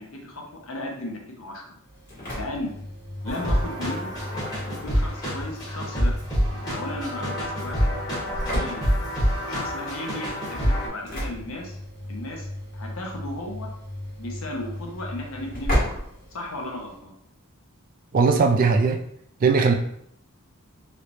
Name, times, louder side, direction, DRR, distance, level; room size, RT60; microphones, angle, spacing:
voice 1, 0.0-1.8 2.3-2.8 3.2-4.1 4.6-6.1 6.7-7.9 8.4-8.9 9.5-11.8 12.1-12.5 12.7-13.7 14.2-16.0 16.3-17.1, left 1 dB, 65° left, 1 dB, 0.7 m, -35 dB
Engine / Slam, 1.8-17.0, equal, 40° left, 1.4 m, -34 dB
sound 1, 3.2-10.9, equal, 15° left, 1.1 m, -27 dB
voice 2, 18.1-19.0 19.4-19.7, right 4 dB, 40° right, 4 dB, 0.3 m, -19 dB
3.2 x 3.0 x 2.5 m, 0.68 s
head